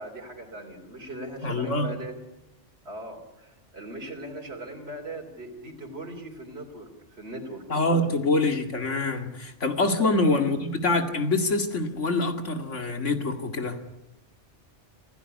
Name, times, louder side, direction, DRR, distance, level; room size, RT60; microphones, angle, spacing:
voice 1, 0.0-2.2 2.8-7.6 10.0-10.2, right 1 dB, 60° right, 0 dB, 3.9 m, -39 dB
voice 2, 1.4-1.9 7.7-13.8, left 2 dB, 85° left, 5 dB, 2.5 m, -25 dB
27.0 x 15.5 x 9.7 m, 0.95 s
omnidirectional pair, 1.2 m